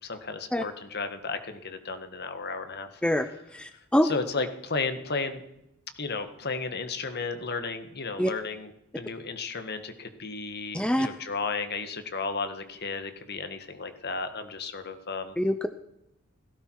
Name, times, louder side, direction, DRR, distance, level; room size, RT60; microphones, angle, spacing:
voice 1, 0.0-3.0 4.0-5.4 6.0-15.4, left 4 dB, 50° left, 8 dB, 1.8 m, -34 dB
voice 2, 3.0-4.1 8.2-8.3 10.7-11.1 15.4-15.7, equal, 5° left, 9 dB, 0.6 m, -25 dB
17.5 x 16.5 x 4.8 m, 0.83 s
head